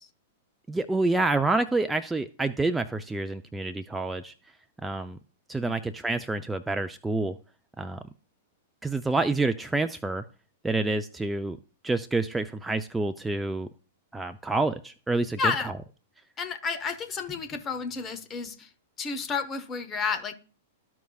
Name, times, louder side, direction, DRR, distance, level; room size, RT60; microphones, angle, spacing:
voice 1, 0.7-4.3 4.8-5.2 5.5-7.4 7.8-8.0 8.8-10.2 10.6-11.6 11.8-13.7 14.1-15.7, right 2 dB, 10° right, 0.4 m, -28 dB
voice 2, 15.4-15.7 16.4-18.7 19.0-20.3, left 5 dB, 25° left, 1.0 m, -31 dB
13.5 x 4.8 x 2.4 m
figure-of-eight pair, 100°, 0 cm